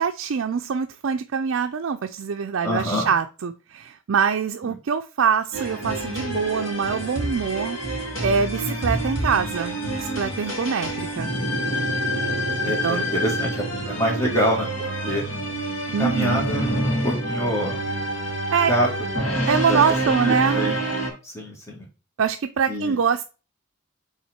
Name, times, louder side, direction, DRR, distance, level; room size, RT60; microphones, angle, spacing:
voice 1, 0.0-7.8 8.2-11.3 12.8-13.0 15.9-16.5 18.5-18.7 19.5-20.7 22.2-23.2, right 6 dB, 70° right, 0.4 m, -24 dB
voice 2, 2.6-3.1 4.6-4.8 8.6-9.0 11.3-11.6 12.7-14.7 15.0-15.2 16.0-17.8 18.7-18.9 19.7-19.8 20.1-20.9 21.2-21.9 22.7-23.0, equal, 15° left, 1.9 m, -26 dB
sound 1, 5.5-21.1, right 1 dB, 70° left, 2.4 m, -27 dB
5.7 x 3.9 x 4.3 m
head